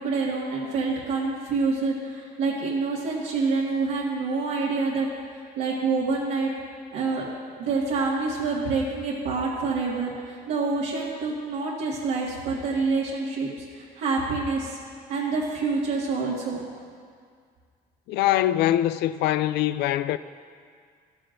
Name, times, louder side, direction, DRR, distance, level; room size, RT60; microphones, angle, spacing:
voice 1, 0.0-5.1 5.6-6.5 6.9-7.3 7.6-14.8 15.1-16.7, right 4 dB, 85° right, 1.8 m, -27 dB
voice 2, 18.1-20.2, left 13 dB, 80° left, 0.4 m, -23 dB
14.5 x 13.5 x 2.6 m
cardioid pair, 110°, 17 cm